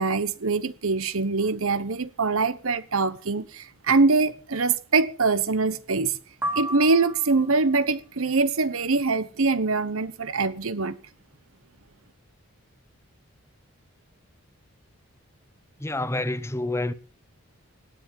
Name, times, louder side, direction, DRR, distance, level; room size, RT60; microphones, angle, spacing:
voice 1, 0.0-6.2 6.5-11.0, right 4 dB, 70° right, 1.0 m, -23 dB
sound 1, 6.4-7.7, equal, 10° right, 1.2 m, -32 dB
voice 2, 15.8-16.9, left 2 dB, 10° left, 0.8 m, -28 dB
18.0 x 9.8 x 5.3 m
head